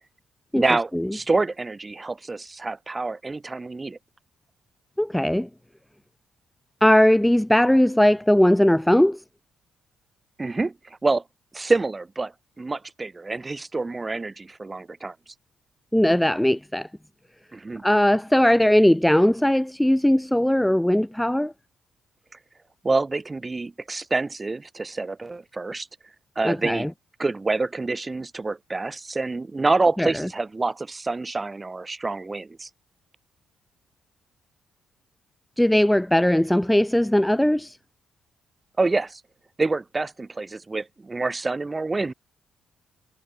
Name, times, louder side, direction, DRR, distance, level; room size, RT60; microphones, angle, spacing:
voice 1, 0.5-4.0 10.4-11.2 11.5-15.1 17.5-17.8 22.8-25.9 26.4-26.9 27.2-32.7 38.8-39.2 39.6-42.1, right 3 dB, 20° right, 3.7 m, -27 dB
voice 2, 5.0-5.5 6.8-9.2 15.9-16.9 17.8-21.5 26.4-26.9 30.0-30.3 35.6-37.8, left 1 dB, 5° left, 1.2 m, -19 dB
cardioid pair, 90°, 0 cm